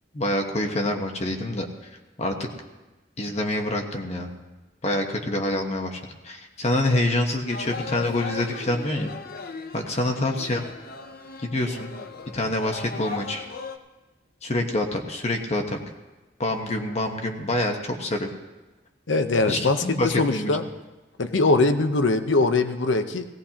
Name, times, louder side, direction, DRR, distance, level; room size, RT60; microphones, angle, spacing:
voice 1, 0.1-1.9 2.2-2.3 3.2-4.3 4.8-9.1 9.7-10.7 11.4-11.9 12.3-13.4 14.4-15.8 16.4-18.3 19.5-20.5, left 1 dB, 35° left, 3 dB, 1.2 m, -26 dB
sound 1, 7.5-13.8, left 4 dB, 55° left, 0.7 m, -38 dB
voice 2, 19.1-20.6 21.2-23.3, left 3 dB, 90° left, 8 dB, 0.9 m, -22 dB
17.5 x 17.0 x 2.9 m, 1.1 s
head